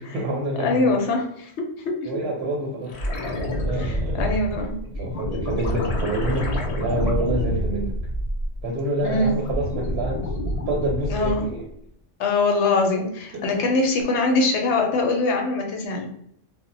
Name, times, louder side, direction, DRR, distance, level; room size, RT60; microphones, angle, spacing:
voice 1, 0.0-0.9 2.0-3.0 3.6-4.3 4.9-7.9 8.6-10.3 10.7-11.6 13.3-13.7, right 1 dB, 65° right, -1 dB, 0.8 m, -28 dB
voice 2, 0.6-2.1 3.8-4.8 9.0-9.4 11.1-11.4 12.2-16.1, left 3 dB, 70° left, 2 dB, 0.8 m, -23 dB
sound 1, 2.9-8.7 9.1-11.6 14.0-14.1, equal, 85° left, 0.3 m, -27 dB
2.1 x 2.0 x 3.8 m, 0.72 s
omnidirectional pair, 1.3 m